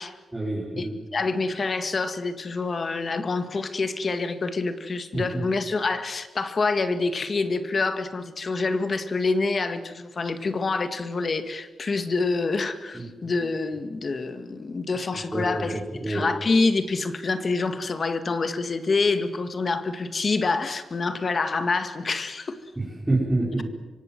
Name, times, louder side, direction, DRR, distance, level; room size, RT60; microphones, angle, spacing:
voice 1, 0.3-0.9 5.1-5.4 12.9-13.1 15.3-16.3 22.8-23.6, right 2 dB, 15° right, 5.6 m, -27 dB
voice 2, 1.1-22.6, left 3 dB, 40° left, 1.8 m, -26 dB
25.5 x 24.5 x 7.6 m
wide cardioid pair, 150°, 0 cm